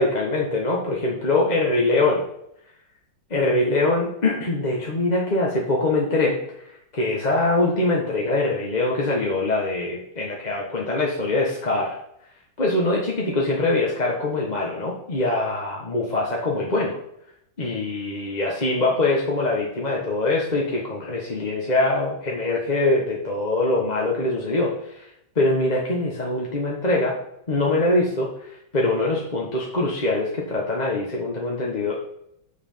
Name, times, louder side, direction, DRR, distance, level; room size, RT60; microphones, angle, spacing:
voice 1, 0.0-2.2 3.3-6.4 6.9-12.0 12.6-16.9 17.6-25.0 25.3-27.2 27.5-32.0, left 2 dB, 25° left, -2 dB, 1.1 m, -23 dB
7.0 x 6.6 x 5.6 m, 0.75 s
omnidirectional pair, 2.3 m